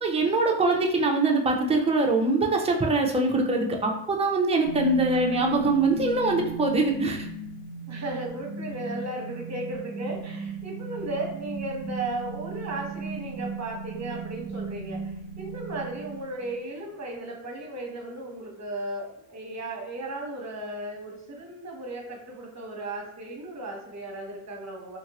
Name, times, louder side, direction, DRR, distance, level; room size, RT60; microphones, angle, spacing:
voice 1, 0.0-7.3, right 2 dB, 15° right, 1 dB, 0.5 m, -23 dB
sound 1, 4.6-16.6, right 4 dB, 25° left, 0.9 m, -37 dB
voice 2, 5.1-5.5 7.9-25.0, right 1 dB, 35° right, 0 dB, 0.9 m, -35 dB
2.9 x 2.5 x 2.9 m, 0.79 s
cardioid pair, 85°, 47 cm